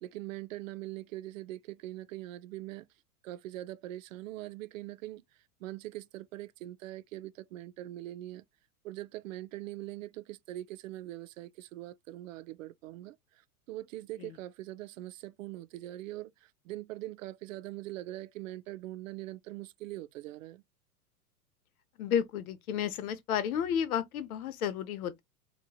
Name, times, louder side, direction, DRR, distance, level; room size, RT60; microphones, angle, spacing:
voice 1, 0.0-2.9 3.2-5.2 5.6-8.4 8.8-13.2 13.7-20.6, right 15 dB, 60° right, 0.5 m, -42 dB
voice 2, 22.0-25.2, left 8 dB, 70° left, 0.7 m, -32 dB
3.0 x 2.8 x 2.2 m
hypercardioid pair, 100°, 46 cm